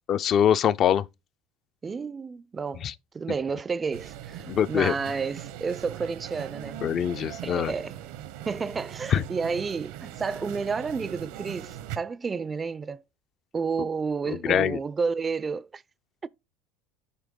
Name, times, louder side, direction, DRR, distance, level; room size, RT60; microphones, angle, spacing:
voice 1, 0.1-1.1 2.8-2.9 4.5-4.9 6.8-7.7 9.1-9.2 14.3-14.8, left 9 dB, 45° left, 0.4 m, -23 dB
voice 2, 1.8-2.9 3.1-6.8 7.1-8.0 8.5-13.0 13.5-15.8 16.2-16.3, right 5 dB, 25° right, 0.4 m, -31 dB
sound 1, 3.9-12.0, right 12 dB, 75° right, 0.8 m, -40 dB
8.3 x 4.5 x 3.6 m
supercardioid pair, 100°, 0 cm